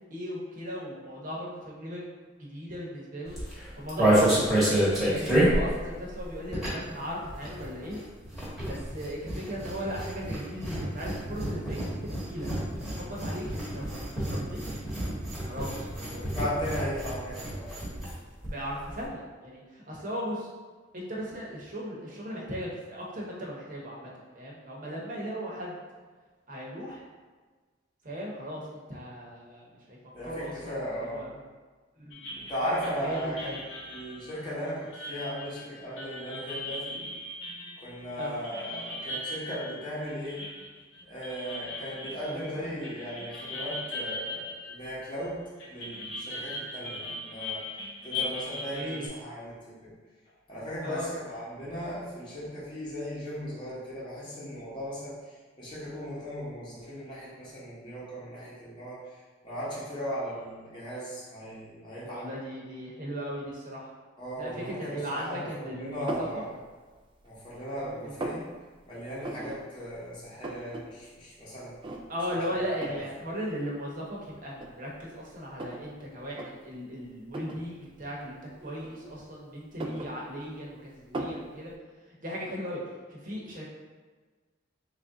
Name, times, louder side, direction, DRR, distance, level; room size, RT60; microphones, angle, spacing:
voice 1, 0.1-2.0 2.4-3.3 3.8-4.2 5.0-8.0 8.6-12.5 12.8-14.8 15.4-16.3 18.5-20.5 20.9-25.7 26.5-27.1 28.0-30.0 30.2-31.3 32.0-32.5 33.0-33.5 38.2-38.3 42.2-42.4 48.7-49.1 50.8-51.0 62.1-63.9 64.4-66.3 67.8-68.2 72.1-81.7 82.2-82.8 83.1-83.6, equal, 45° right, -4 dB, 0.8 m, -37 dB
sound 1, 3.3-7.0 7.2-18.2 18.4-18.5 18.7-19.1, right 1 dB, ahead, 1.0 m, -28 dB
voice 2, 16.3-18.0 30.1-31.3 32.4-37.0 37.8-40.4 41.0-47.6 48.0-49.9 50.5-62.3 64.2-66.6 67.2-68.5 68.8-71.8 72.3-72.9, equal, 25° left, -9 dB, 0.9 m, -37 dB
sound 2, 32.1-45.3 45.6-49.1, left 2 dB, 80° left, 0.8 m, -39 dB
sound 3, 66.1-66.4 66.9-67.6 67.9-68.4 69.2-69.6 69.9-70.0 70.2-70.8 71.2-71.3 71.8-72.3 72.8-73.1 73.9-74.0 74.5-75.9 76.3-76.5 77.3-77.6 78.6-79.3 79.6-80.7 81.1-81.5, right 2 dB, 25° right, 0.3 m, -37 dB
3.2 x 2.5 x 3.7 m, 1.4 s
head